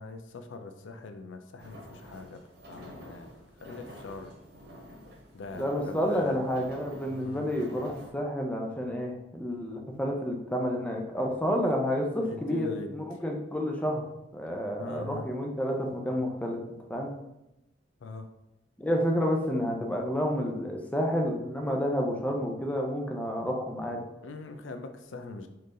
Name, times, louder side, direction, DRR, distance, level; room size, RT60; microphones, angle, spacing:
voice 1, 0.0-3.3 3.6-4.3 5.3-6.4 7.1-7.5 12.2-12.9 14.8-15.3 18.0-18.3 24.2-25.5, left 3 dB, 85° left, 7 dB, 0.5 m, -41 dB
sound 1, 1.6-8.1, equal, 60° right, 1.3 m, -48 dB
voice 2, 5.5-14.1 14.3-16.6 16.9-17.1 18.8-24.0, equal, 10° left, 1 dB, 0.6 m, -30 dB
4.5 x 3.2 x 3.7 m, 0.91 s
head